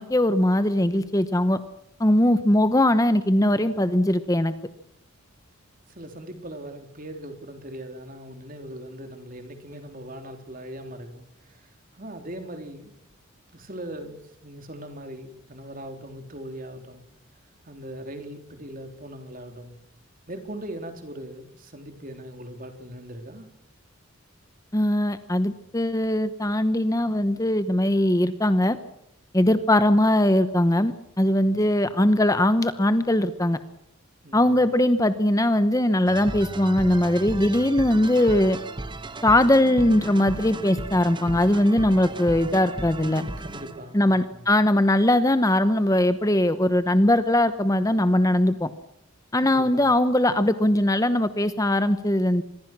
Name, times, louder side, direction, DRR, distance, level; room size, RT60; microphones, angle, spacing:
voice 1, 0.0-1.6 2.0-4.5 24.7-28.8 29.3-33.6 34.3-38.6 39.2-43.2 43.9-48.7 49.3-52.4, left 1 dB, 15° left, 11 dB, 0.9 m, -20 dB
voice 2, 5.9-11.7 11.9-12.9 13.5-17.0 17.7-19.8 20.3-23.5 31.4-31.6 34.2-34.6 43.4-44.5 49.4-49.9, right 1 dB, 40° right, 6 dB, 3.6 m, -40 dB
sound 1, 36.1-44.0, right 2 dB, 20° right, 1.0 m, -35 dB
26.0 x 21.5 x 6.1 m, 0.81 s
head